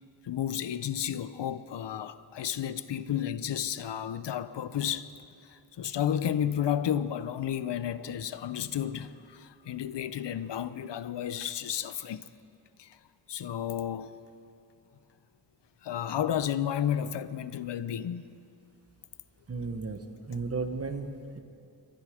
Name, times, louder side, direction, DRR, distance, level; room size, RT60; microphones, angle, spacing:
voice 1, 0.2-5.1 5.4-12.3 12.8-13.0 13.3-14.2 15.8-18.3, left 9 dB, 75° left, 0.6 m, -32 dB
voice 2, 19.5-21.4, right 4 dB, 35° right, 1.1 m, -35 dB
24.0 x 11.5 x 5.0 m
wide cardioid pair, 140°, 43 cm